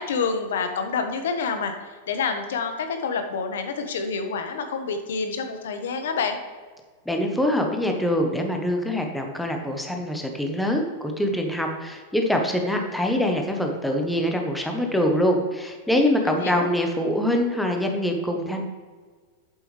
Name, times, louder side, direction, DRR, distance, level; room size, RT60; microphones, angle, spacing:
voice 1, 0.0-6.4 16.2-16.7, left 5 dB, 90° left, 7 dB, 1.2 m, -28 dB
voice 2, 7.1-18.6, left 1 dB, ahead, 2 dB, 0.8 m, -24 dB
8.6 x 7.5 x 3.2 m, 1.4 s
supercardioid pair, 165°, 0 cm